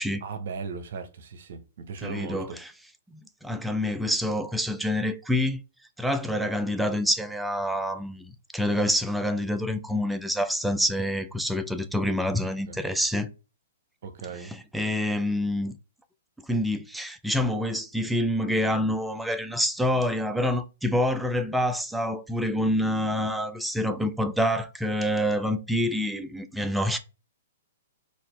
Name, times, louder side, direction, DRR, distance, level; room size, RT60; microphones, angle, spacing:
voice 1, 0.2-2.6 12.7-12.8 14.0-14.5, right 5 dB, 65° right, 0.8 m, -37 dB
voice 2, 2.0-2.7 3.1-5.6 6.0-13.3 14.4-15.7 16.5-27.0, left 1 dB, 5° right, 0.4 m, -27 dB
4.1 x 2.5 x 3.3 m
hypercardioid pair, 125°, 0 cm